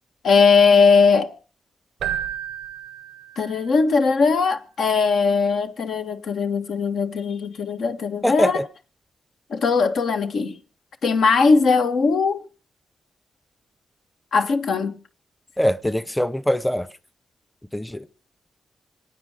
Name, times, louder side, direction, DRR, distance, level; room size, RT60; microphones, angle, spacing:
voice 1, 0.2-1.3 3.4-8.6 9.5-10.6 11.0-12.4 14.3-15.0, left 5 dB, 75° left, 1.7 m, -19 dB
Keyboard (musical), 2.0-3.8, right 10 dB, 85° right, 0.7 m, -32 dB
voice 2, 8.2-8.6 15.6-16.9 17.7-18.0, equal, 10° left, 0.9 m, -22 dB
26.0 x 9.0 x 5.0 m
cardioid pair, 60°, 0 cm